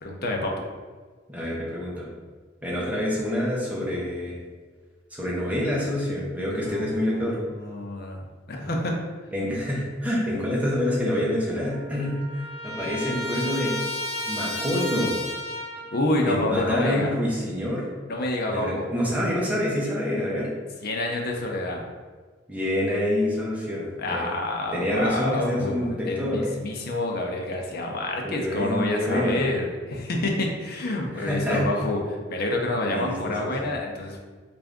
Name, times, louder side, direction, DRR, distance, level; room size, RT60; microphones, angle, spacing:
voice 1, 0.0-0.7 6.4-9.0 15.9-17.1 18.1-18.9 20.8-21.8 24.0-34.2, left 2 dB, 55° left, 1 dB, 0.6 m, -28 dB
voice 2, 1.3-2.1 2.6-4.3 5.1-7.4 9.3-12.2 12.6-13.7 14.3-15.1 16.3-17.9 18.5-20.5 22.5-24.3 24.7-26.5 28.2-29.4 31.1-31.6 32.9-33.7, left 1 dB, 10° right, -5 dB, 0.8 m, -27 dB
Trumpet, 11.6-16.0, left 1 dB, 35° left, 1.3 m, -33 dB
3.4 x 2.5 x 3.5 m, 1.5 s
head